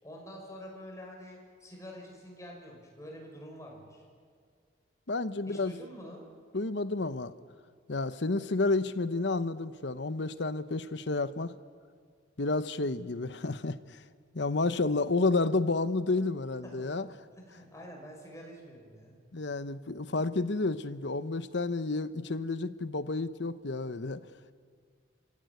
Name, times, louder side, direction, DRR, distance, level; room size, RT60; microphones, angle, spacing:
voice 1, 0.0-4.0 5.5-6.2 16.6-17.2 17.5-19.1, equal, 15° left, 0 dB, 5.9 m, -47 dB
voice 2, 5.1-5.7 6.5-7.3 7.9-11.5 12.4-13.8 14.3-17.1 19.3-24.2, left 3 dB, 65° left, 13 dB, 1.0 m, -30 dB
30.0 x 16.0 x 9.6 m, 2.1 s
head